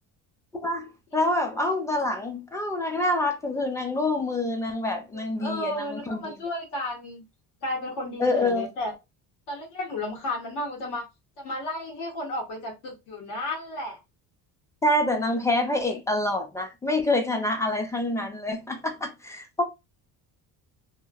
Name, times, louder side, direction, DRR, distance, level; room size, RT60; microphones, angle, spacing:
voice 1, 0.5-6.4 8.2-8.7 14.8-19.6, left 2 dB, 10° left, 0.3 m, -26 dB
voice 2, 5.4-7.3 7.6-8.9 9.5-11.1 11.4-14.0, left 1 dB, 90° left, 1.7 m, -33 dB
2.9 x 2.4 x 2.3 m
cardioid pair, 140°, 40 cm